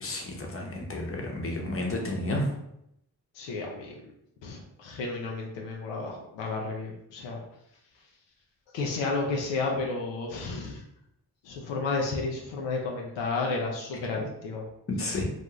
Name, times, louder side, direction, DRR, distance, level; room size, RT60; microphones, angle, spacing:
voice 1, 0.0-2.5 14.9-15.2, left 1 dB, 30° left, 0 dB, 0.8 m, -31 dB
voice 2, 3.3-4.0 4.4-7.4 8.7-10.8 11.4-14.6, left 3 dB, 85° left, 0 dB, 0.5 m, -32 dB
2.4 x 2.3 x 2.9 m, 0.79 s
supercardioid pair, 40°, 43 cm